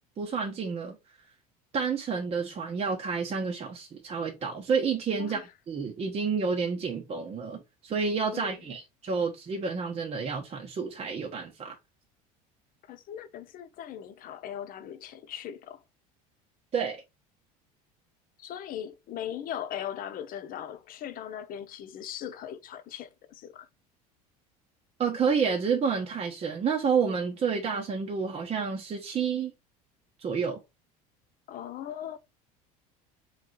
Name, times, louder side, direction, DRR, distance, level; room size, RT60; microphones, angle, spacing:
voice 1, 0.2-1.0 1.7-5.4 5.7-11.8 16.7-17.0 25.0-29.5 30.2-30.6, right 5 dB, 35° right, 0.9 m, -29 dB
voice 2, 8.3-8.8 12.9-15.8 18.4-23.7 31.5-32.2, left 10 dB, 50° left, 0.8 m, -39 dB
3.7 x 3.2 x 4.0 m
hypercardioid pair, 90°, 19 cm